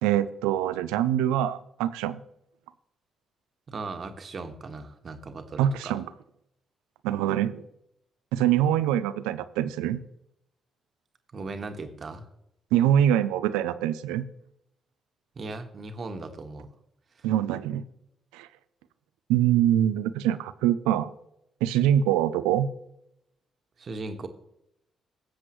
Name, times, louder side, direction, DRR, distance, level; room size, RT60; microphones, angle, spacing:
voice 1, 0.0-2.2 5.6-6.0 7.0-7.6 8.3-10.0 12.7-14.2 17.2-17.8 18.3-18.5 19.3-21.1 21.6-22.7, right 11 dB, 85° right, 14 dB, 0.5 m, -24 dB
voice 2, 3.7-5.9 11.3-12.3 15.3-16.7 17.1-17.3 23.8-24.3, right 3 dB, 50° right, 6 dB, 1.6 m, -38 dB
18.0 x 7.6 x 3.1 m, 0.80 s
hypercardioid pair, 45°, 0 cm